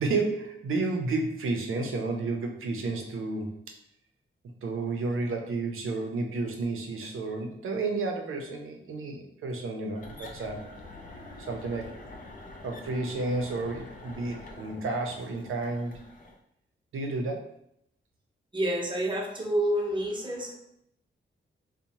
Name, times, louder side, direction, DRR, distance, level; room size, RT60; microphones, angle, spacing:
voice 1, 0.0-3.7 4.6-10.7 11.5-11.9 12.6-16.0 16.9-17.5, right 3 dB, 80° right, 2 dB, 0.5 m, -31 dB
sound 1, 9.9-16.4, left 2 dB, 40° left, 0.4 m, -46 dB
voice 2, 18.5-20.5, right 1 dB, 25° right, -1 dB, 0.7 m, -28 dB
2.6 x 2.1 x 2.8 m, 0.73 s
cardioid pair, 85°, 21 cm